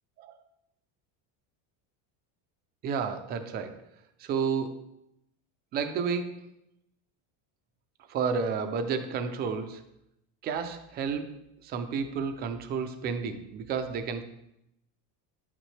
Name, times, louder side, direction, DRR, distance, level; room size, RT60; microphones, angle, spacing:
voice 1, 2.8-3.8 4.2-4.8 5.7-6.5 8.1-9.8 10.4-14.2, right 6 dB, 25° right, 8 dB, 0.3 m, -31 dB
11.0 x 9.0 x 3.2 m, 0.83 s
cardioid pair, 175°, 48 cm